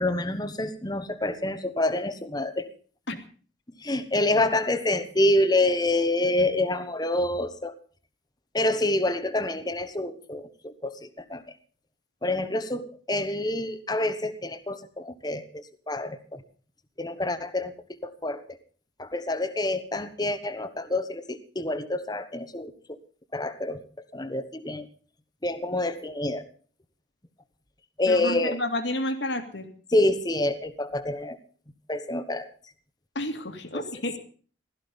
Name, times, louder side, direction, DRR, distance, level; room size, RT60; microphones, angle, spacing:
voice 1, 0.0-2.7 3.8-7.7 8.5-11.4 12.2-16.4 17.0-18.4 19.0-23.0 23.3-23.8 24.1-24.9 25.4-26.5 28.0-28.6 29.9-31.4 31.9-32.5 33.7-33.8, left 1 dB, 20° left, 11 dB, 1.2 m, -27 dB
voice 2, 28.1-29.7 33.1-34.2, left 1 dB, 60° left, 7 dB, 2.3 m, -30 dB
16.5 x 13.5 x 5.3 m, 0.42 s
head